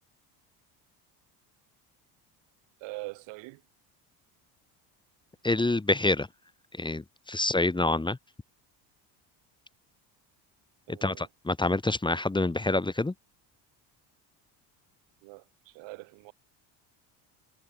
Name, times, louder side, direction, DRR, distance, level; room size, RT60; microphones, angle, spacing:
voice 1, 2.8-3.6 10.9-11.3 15.2-16.3, right 25 dB, 80° right, 7.9 m, -43 dB
voice 2, 5.4-6.3 6.8-8.2 10.9-13.1, left 2 dB, 10° left, 2.3 m, -27 dB
cardioid pair, 115°, 44 cm